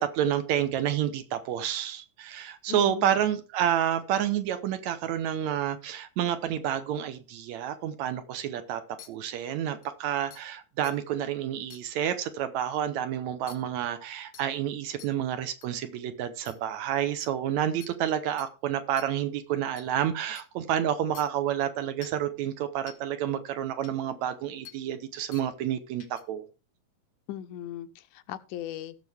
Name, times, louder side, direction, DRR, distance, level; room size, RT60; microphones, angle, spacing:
voice 1, 0.0-8.8 9.1-26.4, right 10 dB, 75° right, 1.9 m, -29 dB
voice 2, 2.7-3.2 27.3-29.0, left 12 dB, 90° left, 2.2 m, -38 dB
sound 1, 9.0-9.1 9.8-9.9 10.3-10.4 10.8-10.9 11.7-11.8 13.5-13.6 14.3-14.5 15.0-15.1 15.6-15.7 16.5-16.6 17.2-17.3 17.8-17.9 18.4-18.5 19.0-19.1 19.8-19.9 20.4-20.5 21.1-21.2 22.0-22.2 22.9-23.0 23.8-23.9 24.6-24.8 25.3-25.5 26.0-26.2, left 9 dB, 65° left, 0.9 m, -47 dB
17.0 x 6.6 x 3.5 m
omnidirectional pair, 3.6 m